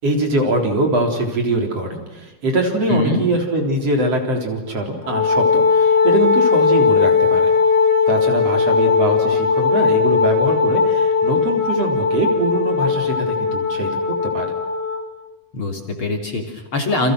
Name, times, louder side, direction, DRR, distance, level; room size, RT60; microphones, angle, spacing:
voice 1, 0.0-7.5 8.1-14.5, right 2 dB, 40° right, 2 dB, 4.6 m, -22 dB
voice 2, 2.9-3.2 15.5-17.1, left 2 dB, 35° left, 2 dB, 3.7 m, -22 dB
Wind instrument woodwind instrument, 5.0-15.0, left 5 dB, 55° left, 5.1 m, -18 dB
30.0 x 29.0 x 6.4 m, 1.0 s
omnidirectional pair, 4.5 m